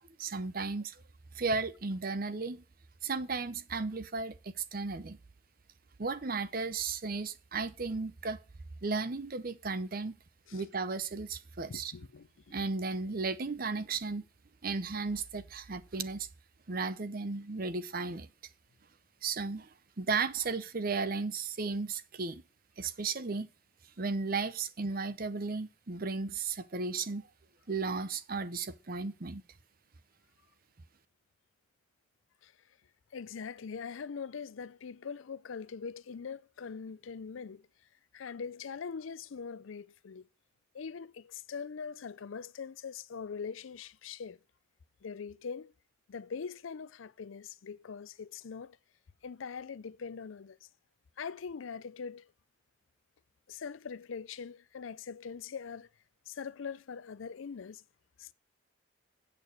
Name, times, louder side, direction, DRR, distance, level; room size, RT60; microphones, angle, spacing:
voice 1, 0.2-1.0 1.3-2.6 3.0-5.2 6.0-8.4 8.8-10.1 10.5-11.9 12.5-14.2 14.6-16.3 16.7-18.3 19.2-19.7 20.0-22.4 22.8-23.5 24.0-27.2 27.7-29.4, right 4 dB, 45° right, 0.7 m, -34 dB
voice 2, 11.6-12.5 32.4-32.5 33.1-37.7 38.1-40.3 40.7-44.4 45.0-45.7 46.1-48.8 49.2-50.6 51.2-52.3 53.5-55.9 56.3-57.8 58.2-58.3, left 6 dB, 80° left, 0.5 m, -42 dB
8.3 x 6.9 x 6.6 m
head